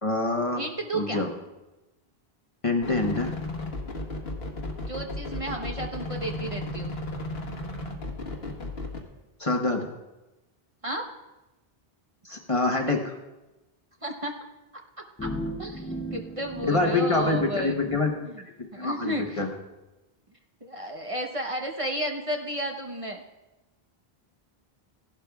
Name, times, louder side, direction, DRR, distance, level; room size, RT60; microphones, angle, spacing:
voice 1, 0.0-0.6 0.9-1.3 2.6-3.3 9.4-9.9 12.2-13.1 16.6-18.1 18.8-19.5, left 3 dB, 35° left, 3 dB, 1.0 m, -25 dB
voice 2, 0.6-1.2 4.9-6.9 10.8-11.1 14.0-14.3 15.2-15.3 15.6-17.7 18.2-18.4 18.7-19.4 20.6-23.2, right 1 dB, 35° right, 2 dB, 0.9 m, -32 dB
sound 1, 2.8-9.0, left 2 dB, 75° left, 1.6 m, -34 dB
sound 2, 15.2-18.0, equal, 15° left, 0.7 m, -36 dB
16.5 x 11.5 x 2.3 m, 1.0 s
omnidirectional pair, 1.0 m